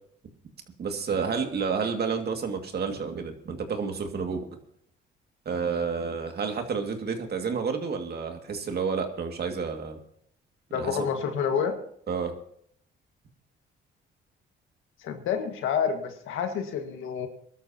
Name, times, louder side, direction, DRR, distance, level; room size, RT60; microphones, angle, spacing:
voice 1, 0.8-4.5 5.5-10.0 10.7-11.1 12.1-12.3, right 5 dB, 55° right, 5 dB, 2.2 m, -30 dB
voice 2, 10.7-11.8 15.0-17.3, left 7 dB, 85° left, 6 dB, 1.8 m, -28 dB
24.0 x 13.0 x 2.9 m, 0.66 s
cardioid pair, 90°, 20 cm